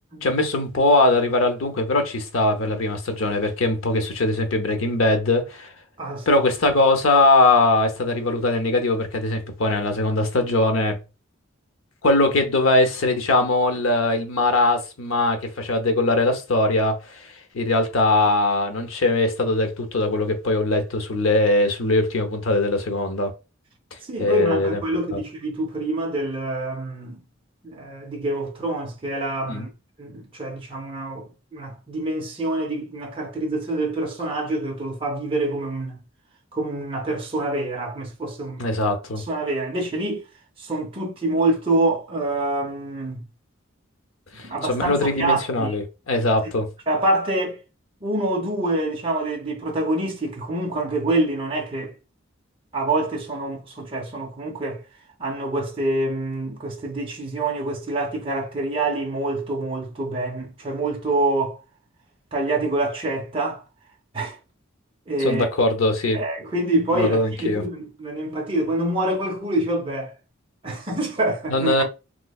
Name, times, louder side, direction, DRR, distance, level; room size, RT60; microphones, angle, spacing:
voice 1, 0.2-5.7 6.3-11.0 12.0-17.3 17.5-23.3 24.2-24.8 29.5-29.6 38.6-39.2 44.4-46.7 65.2-66.2 66.9-67.6 71.5-71.8, left 2 dB, 80° left, 0.7 m, -21 dB
voice 2, 24.0-27.2 27.6-29.7 30.0-36.0 36.5-38.7 39.3-40.2 40.6-43.2 44.4-45.7 46.9-47.6 48.0-51.9 52.7-54.8 55.2-61.6 62.3-63.6 64.1-64.4 65.1-65.5 66.1-70.1 70.6-71.8, right 2 dB, 25° right, 0.6 m, -26 dB
3.1 x 3.1 x 2.3 m
head